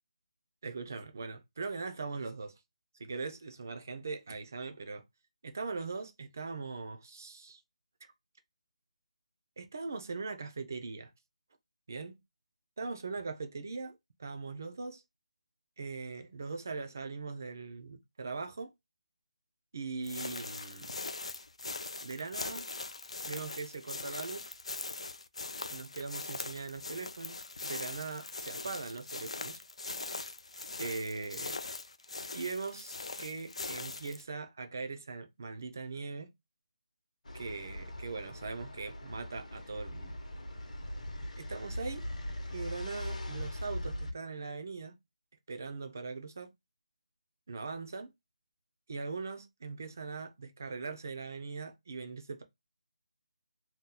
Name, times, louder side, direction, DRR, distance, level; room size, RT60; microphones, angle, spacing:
voice 1, 0.6-2.6 3.0-5.0 5.4-7.6 9.6-11.1 11.9-12.2 12.8-15.0 15.8-18.7 19.7-20.9 22.0-22.7 23.3-24.5 25.7-29.6 30.8-31.6 32.3-36.3 37.3-40.2 41.4-42.1 42.5-44.9 45.5-46.5 47.5-48.1 48.9-52.4, right 4 dB, 25° right, 0.4 m, -40 dB
sound 1, 20.0-34.2, left 3 dB, 60° left, 0.4 m, -41 dB
sound 2, 37.2-44.1, left 1 dB, 80° left, 0.9 m, -40 dB
2.8 x 2.2 x 3.6 m
figure-of-eight pair, 180°, 4 cm